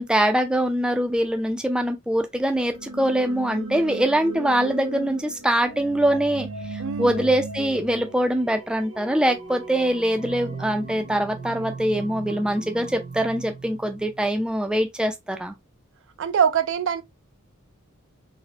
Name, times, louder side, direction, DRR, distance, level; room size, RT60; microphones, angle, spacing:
voice 1, 0.0-15.5, right 1 dB, 5° right, 0.4 m, -23 dB
sound 1, 2.4-14.3, right 2 dB, 80° right, 1.5 m, -37 dB
voice 2, 6.8-7.3 11.5-11.7 16.2-17.0, right 7 dB, 60° right, 0.4 m, -24 dB
4.1 x 2.1 x 2.6 m
head